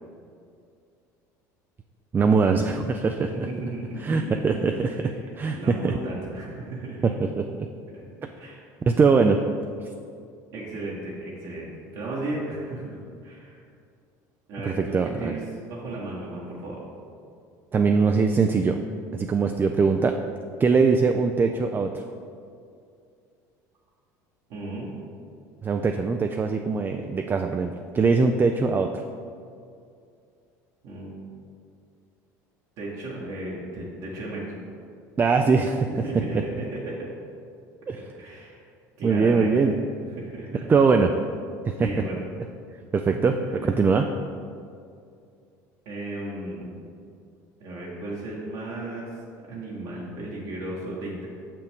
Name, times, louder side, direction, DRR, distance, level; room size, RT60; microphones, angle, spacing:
voice 1, 2.1-3.5 4.0-4.9 5.4-5.9 7.0-7.4 8.9-9.4 14.6-15.4 17.7-18.8 19.1-20.2 20.6-21.9 25.6-29.0 35.2-35.9 36.1-36.2 37.9-38.0 39.0-39.7 40.7-41.1 41.7-41.9 42.9-43.3 43.8-44.0, right 4 dB, 25° right, 5 dB, 0.3 m, -21 dB
voice 2, 3.3-7.1 7.9-8.1 8.3-8.7 10.5-13.6 14.5-15.4 15.7-16.8 24.5-24.9 30.8-31.1 32.8-34.5 35.9-37.1 37.9-38.6 39.0-39.7 40.1-40.7 41.8-42.2 43.3-43.7 45.8-46.7 47.6-49.1 49.5-51.3, right 2 dB, 65° right, -6 dB, 1.3 m, -35 dB
6.3 x 5.7 x 3.5 m, 2.4 s
hypercardioid pair, 85°, 9 cm